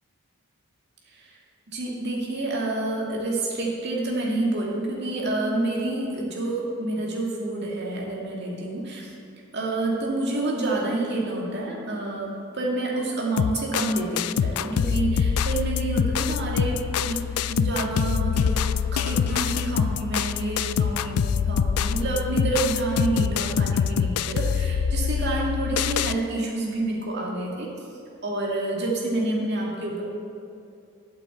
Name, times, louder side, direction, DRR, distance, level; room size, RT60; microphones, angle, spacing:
voice 1, 1.7-9.1 9.5-17.2 17.5-18.6 18.9-27.7 28.2-30.0, right 2 dB, 50° right, -3 dB, 2.4 m, -28 dB
sound 1, 13.4-26.2, left 7 dB, 85° left, 0.4 m, -25 dB
9.2 x 8.2 x 8.2 m, 2.5 s
head